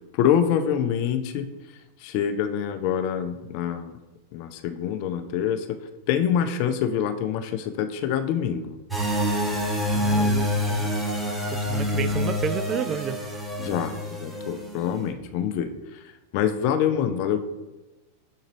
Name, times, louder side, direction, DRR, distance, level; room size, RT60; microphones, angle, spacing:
voice 1, 0.1-1.5 2.0-4.0 4.3-5.8 6.1-8.8 13.6-16.0 16.3-17.4, left 9 dB, 50° left, 9 dB, 0.6 m, -25 dB
sound 1, 8.9-14.8, left 1 dB, 10° right, 1.3 m, -26 dB
voice 2, 9.9-10.9 11.5-13.2, right 7 dB, 30° right, 12 dB, 0.3 m, -31 dB
6.4 x 4.0 x 4.0 m, 1.1 s
figure-of-eight pair, 95°, 0 cm